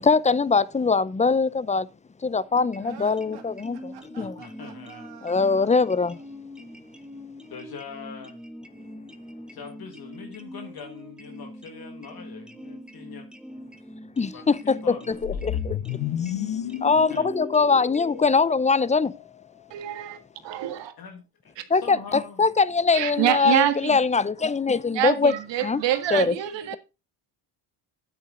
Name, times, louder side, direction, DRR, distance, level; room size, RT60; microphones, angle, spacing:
voice 1, 0.0-1.9 2.2-4.4 5.2-6.2 14.2-15.8 16.8-19.1 21.7-25.3 25.6-25.8 26.1-26.3, left 4 dB, 15° left, 0.5 m, -22 dB
sound 1, 2.5-18.2, equal, ahead, 1.1 m, -43 dB
sound 2, 2.8-6.3, right 8 dB, 65° right, 2.4 m, -47 dB
voice 2, 4.2-5.1 7.5-8.5 9.5-13.3 14.3-15.6 16.9-17.3 21.0-22.5, left 6 dB, 60° left, 2.0 m, -43 dB
sound 3, 15.2-19.4, left 11 dB, 90° left, 1.1 m, -32 dB
voice 3, 19.7-20.2 20.4-20.9 22.9-24.0 24.9-26.8, right 12 dB, 85° right, 1.7 m, -25 dB
9.5 x 8.9 x 3.8 m
cardioid pair, 105°, 42 cm